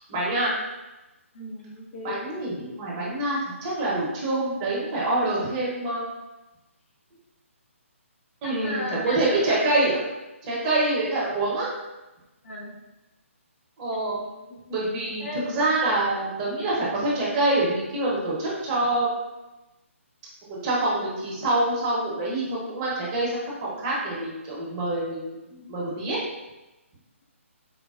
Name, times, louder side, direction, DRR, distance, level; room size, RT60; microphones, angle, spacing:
voice 1, 0.1-0.5 2.0-6.1 8.4-10.0 10.4-11.7 13.8-14.3 14.7-19.1 20.5-26.2, right 2 dB, 25° right, -6 dB, 0.8 m, -26 dB
voice 2, 1.3-2.2 8.6-9.7 10.6-10.8 12.4-12.7 14.4-14.6 15.2-15.4, left 1 dB, 60° left, -5 dB, 1.0 m, -34 dB
4.1 x 2.1 x 2.3 m, 1.0 s
hypercardioid pair, 150°, 7 cm